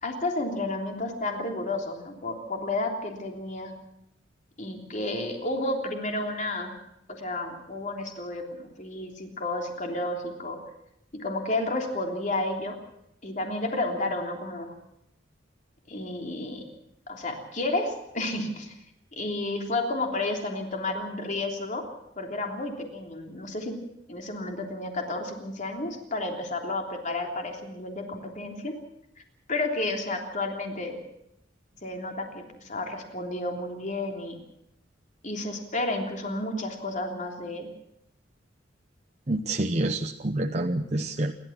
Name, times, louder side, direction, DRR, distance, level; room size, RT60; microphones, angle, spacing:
voice 1, 0.0-3.7 4.6-6.7 7.2-10.6 11.1-12.7 13.2-14.7 15.9-16.6 17.1-18.7 19.2-21.8 22.2-23.7 24.1-28.7 29.5-31.0 31.8-34.4 35.2-37.7, left 2 dB, 40° left, 2 dB, 3.3 m, -31 dB
voice 2, 39.3-41.3, right 2 dB, 35° right, 4 dB, 0.9 m, -27 dB
28.5 x 12.5 x 7.4 m, 0.80 s
head